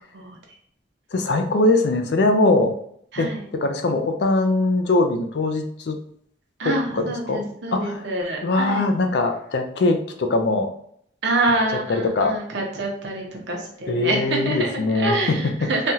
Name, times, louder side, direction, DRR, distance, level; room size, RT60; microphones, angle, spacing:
voice 1, 1.1-2.7 3.2-6.0 6.6-7.4 7.7-8.1 8.4-10.7 11.9-12.4 13.9-15.7, left 2 dB, 65° left, 6 dB, 0.4 m, -21 dB
voice 2, 6.6-8.9 11.2-15.9, right 2 dB, 70° right, 0 dB, 0.7 m, -26 dB
3.3 x 2.3 x 2.7 m, 0.67 s
head